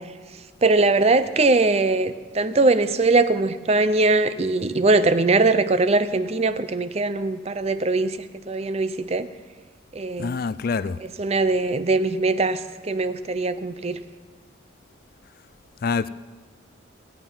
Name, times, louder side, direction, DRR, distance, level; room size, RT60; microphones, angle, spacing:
voice 1, 0.6-8.2 8.5-9.3 9.9-10.4 11.2-12.6 12.9-14.0, right 3 dB, 35° right, 13 dB, 0.5 m, -21 dB
voice 2, 10.2-11.0 15.8-16.1, left 5 dB, 50° left, 17 dB, 0.4 m, -25 dB
16.5 x 9.2 x 5.5 m, 1.4 s
head